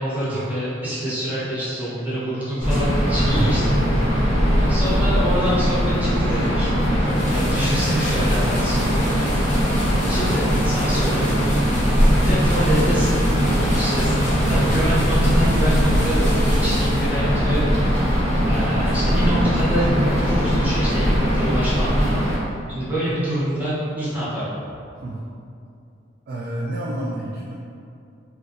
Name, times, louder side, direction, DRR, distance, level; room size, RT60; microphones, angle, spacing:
voice 1, 0.0-3.8 4.6-6.7 7.3-9.6 10.1-11.6 12.2-13.2 13.7-14.1 14.4-17.6 18.4-19.9 20.2-22.3 22.7-24.6, equal, 10° right, -11 dB, 0.9 m, -26 dB
sound 1, 2.6-22.4, equal, 35° right, 1.1 m, -20 dB
voice 2, 3.1-3.7 11.1-11.7 14.5-14.8 25.0-25.2 26.3-27.5, right 2 dB, 50° right, -4 dB, 0.3 m, -29 dB
sound 2, 7.0-17.4, left 1 dB, 40° left, 0.6 m, -35 dB
3.6 x 2.4 x 2.6 m, 2.5 s
head